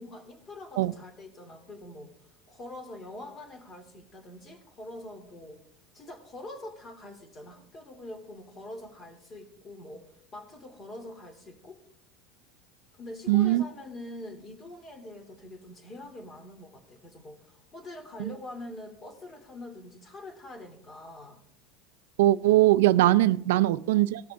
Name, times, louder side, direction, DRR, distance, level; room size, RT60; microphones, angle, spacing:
voice 1, 0.0-2.1 2.5-5.6 5.9-11.8 13.0-21.4 23.6-23.9, left 1 dB, 30° left, 2.5 m, -44 dB
voice 2, 13.3-13.6 18.2-18.3 22.2-24.2, right 16 dB, 85° right, 0.5 m, -21 dB
19.0 x 6.4 x 3.4 m
supercardioid pair, 125°, 0 cm